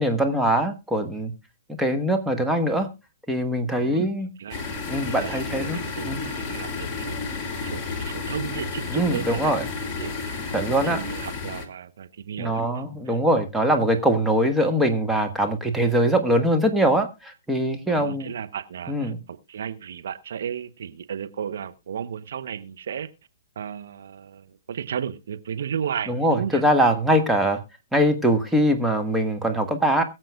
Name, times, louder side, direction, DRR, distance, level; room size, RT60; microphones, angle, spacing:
voice 1, 0.0-1.3 1.8-2.9 3.3-4.3 4.9-5.8 6.0-6.3 8.9-9.6 10.5-11.0 12.4-18.3 18.9-19.2 26.1-27.6 27.9-30.0, right 1 dB, 5° right, 1.3 m, -22 dB
voice 2, 3.8-9.7 10.0-10.5 10.8-13.2 17.9-23.1 23.6-26.6, right 8 dB, 65° right, 0.8 m, -34 dB
sound 1, 4.5-11.7, left 4 dB, 20° left, 2.2 m, -31 dB
22.0 x 7.6 x 2.3 m
figure-of-eight pair, 125°, 0 cm